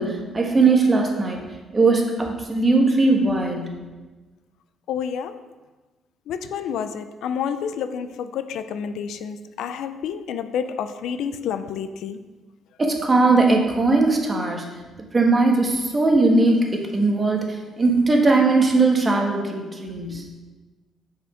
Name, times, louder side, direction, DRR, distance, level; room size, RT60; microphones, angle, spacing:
voice 1, 0.0-1.4 1.7-3.7 12.8-14.6 15.1-17.5 17.8-20.2, right 3 dB, 30° right, 2 dB, 1.2 m, -19 dB
voice 2, 4.9-5.4 6.3-12.2 20.1-20.3, left 7 dB, 80° left, 11 dB, 0.4 m, -29 dB
6.4 x 5.1 x 4.9 m, 1.2 s
cardioid pair, 90°, 0 cm